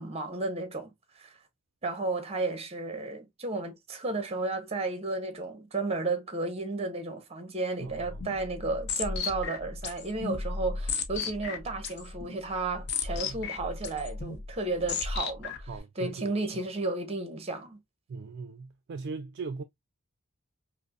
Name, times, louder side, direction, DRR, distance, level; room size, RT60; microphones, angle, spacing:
voice 1, 0.0-1.4 1.8-15.7 16.0-17.8, right 3 dB, 30° right, 0.7 m, -33 dB
voice 2, 7.8-8.2 13.2-13.4 15.7-16.5 18.1-19.6, right 4 dB, 50° right, 0.3 m, -39 dB
sound 1, 7.9-15.8, left 4 dB, 50° left, 0.6 m, -35 dB
5.1 x 2.0 x 2.3 m
head